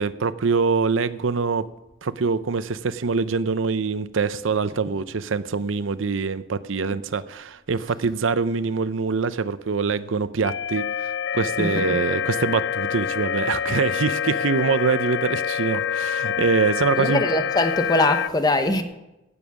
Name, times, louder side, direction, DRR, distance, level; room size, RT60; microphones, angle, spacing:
voice 1, 0.0-1.6 2.0-17.2, right 5 dB, 85° right, 0.6 m, -24 dB
sound 1, 10.4-18.3, left 8 dB, 65° left, 0.3 m, -26 dB
voice 2, 11.6-12.0 17.0-18.8, left 1 dB, 20° left, 1.1 m, -22 dB
16.5 x 7.1 x 6.2 m
head